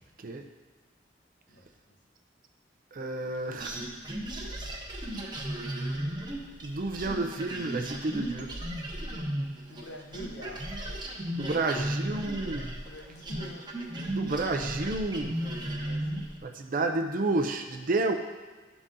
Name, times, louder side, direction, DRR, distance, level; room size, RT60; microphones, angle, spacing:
voice 1, 1.5-2.0 9.7-10.7 12.8-13.7 15.8-16.3, equal, 75° left, 1 dB, 1.1 m, -46 dB
voice 2, 2.9-3.8 6.6-8.5 11.3-12.7 14.0-15.4 16.4-18.1, right 2 dB, 50° right, 5 dB, 0.6 m, -30 dB
sound 1, 3.6-9.9 10.1-16.4, right 1 dB, 25° right, 0.9 m, -35 dB
11.0 x 4.0 x 3.8 m, 1.4 s
head